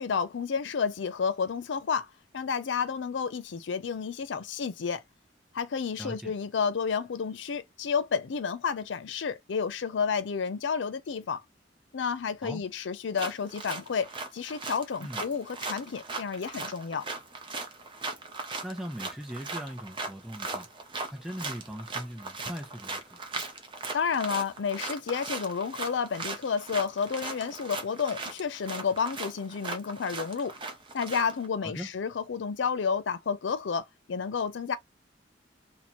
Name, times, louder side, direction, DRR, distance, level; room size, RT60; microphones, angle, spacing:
voice 1, 0.0-2.1 2.3-5.0 5.5-11.4 11.9-17.1 23.9-30.5 30.9-34.8, left 6 dB, 90° left, 0.5 m, -31 dB
voice 2, 6.0-6.3 12.4-12.6 15.0-15.2 18.6-20.7 21.1-23.4 31.6-31.9, equal, ahead, 0.5 m, -39 dB
sound 1, 13.1-31.5, right 3 dB, 30° right, 0.9 m, -38 dB
2.9 x 2.7 x 4.1 m
head